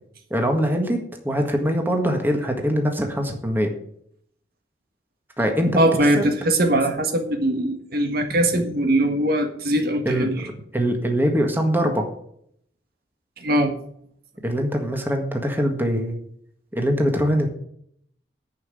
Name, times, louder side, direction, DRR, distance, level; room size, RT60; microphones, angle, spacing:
voice 1, 0.3-3.7 5.4-5.8 6.2-6.3 10.0-10.4 10.7-12.1 14.4-16.2 16.7-17.5, equal, 10° right, 3 dB, 1.7 m, -22 dB
voice 2, 5.7-10.4 13.4-13.7, right 1 dB, 60° right, 5 dB, 1.6 m, -21 dB
10.5 x 5.8 x 7.8 m, 0.67 s
head